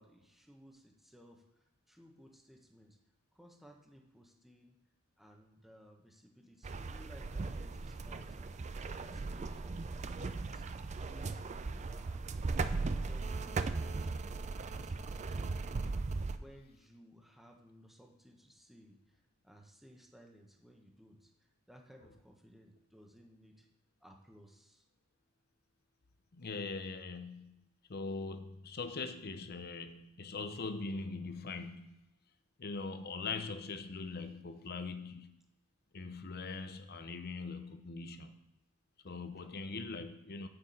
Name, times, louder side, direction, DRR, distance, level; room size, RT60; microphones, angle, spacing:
voice 1, 0.0-1.5 1.9-3.0 3.3-4.8 5.2-10.7 11.0-12.3 12.7-14.4 14.7-15.5 16.3-23.7 24.0-24.8, equal, ahead, 1.1 m, -59 dB
sound 1, 6.6-16.4, right 3 dB, 35° right, 0.4 m, -38 dB
voice 2, 26.3-27.6 27.9-32.0 32.6-35.3 35.9-38.4 39.0-40.5, left 4 dB, 50° left, 0.7 m, -41 dB
6.8 x 5.9 x 7.5 m
head